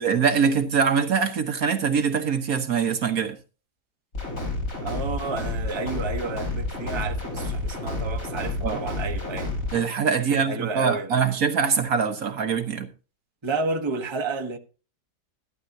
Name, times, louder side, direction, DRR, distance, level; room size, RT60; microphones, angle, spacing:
voice 1, 0.0-3.3 8.6-8.8 9.7-12.9, right 6 dB, 60° right, 1.5 m, -23 dB
sound 1, 4.1-9.8, left 2 dB, 50° left, 5.1 m, -30 dB
voice 2, 4.8-9.5 10.3-11.4 13.4-14.6, right 3 dB, 20° right, 1.1 m, -31 dB
13.5 x 12.5 x 2.7 m
omnidirectional pair, 1.8 m